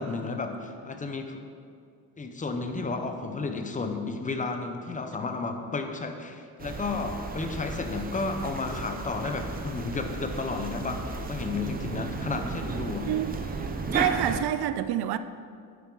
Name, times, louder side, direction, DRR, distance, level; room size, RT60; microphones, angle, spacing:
voice 1, 0.0-1.4 2.2-13.1, left 3 dB, 20° left, 5 dB, 0.6 m, -32 dB
sound 1, 6.6-14.4, right 4 dB, 25° right, 0.6 m, -34 dB
voice 2, 13.9-15.2, right 11 dB, 75° right, 13 dB, 0.6 m, -27 dB
9.1 x 8.5 x 3.9 m, 2.2 s
cardioid pair, 155°, 39 cm